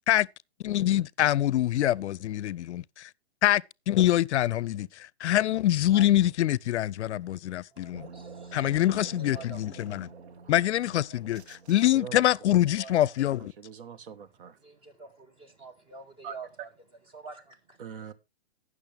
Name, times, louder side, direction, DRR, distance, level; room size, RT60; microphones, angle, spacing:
voice 1, 0.6-3.1 3.4-8.1 8.5-10.1 10.5-13.5, left 13 dB, 85° left, 0.5 m, -25 dB
voice 2, 5.9-6.3 7.7-8.8 9.2-9.6 9.8-10.4 11.1-11.2 12.6-13.1 14.1-14.2 14.5-16.7 17.0-17.8, right 3 dB, 15° right, 1.7 m, -48 dB
sound 1, 7.9-12.4, right 5 dB, 75° right, 1.6 m, -47 dB
voice 3, 11.9-12.3 13.6-14.5 16.2-16.3 17.8-18.1, right 7 dB, 55° right, 1.2 m, -42 dB
18.0 x 6.4 x 3.3 m
hypercardioid pair, 150°, 33 cm